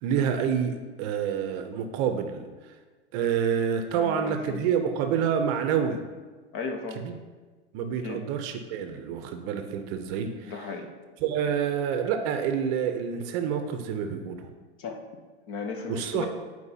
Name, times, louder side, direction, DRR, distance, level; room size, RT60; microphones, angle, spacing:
voice 1, 0.0-2.5 3.1-6.0 7.0-7.2 7.7-10.5 11.2-14.4 15.9-16.3, right 7 dB, 40° right, 6 dB, 0.7 m, -28 dB
voice 2, 3.9-4.7 6.5-7.0 8.0-8.2 10.4-10.9 14.8-15.0 15.5-16.3, left 4 dB, 35° left, 4 dB, 0.9 m, -35 dB
9.7 x 4.6 x 2.8 m, 1.4 s
hypercardioid pair, 125°, 35 cm